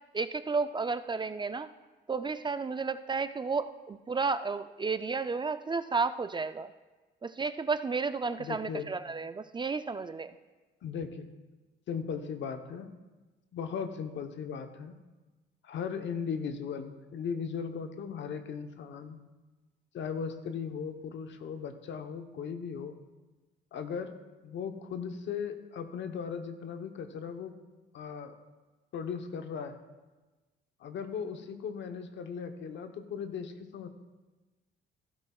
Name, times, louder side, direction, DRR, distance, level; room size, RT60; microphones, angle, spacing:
voice 1, 0.1-1.7 2.1-6.7 7.2-10.4, right 4 dB, 25° right, 11 dB, 0.4 m, -32 dB
voice 2, 8.4-8.9 10.8-11.3 11.9-12.9 13.5-15.0 15.6-19.2 19.9-22.9 23.7-24.1 24.4-27.5 27.9-28.3 28.9-29.8 30.8-33.9, left 6 dB, 70° left, 7 dB, 0.9 m, -37 dB
15.0 x 12.0 x 2.3 m, 1.2 s
cardioid pair, 90°, 20 cm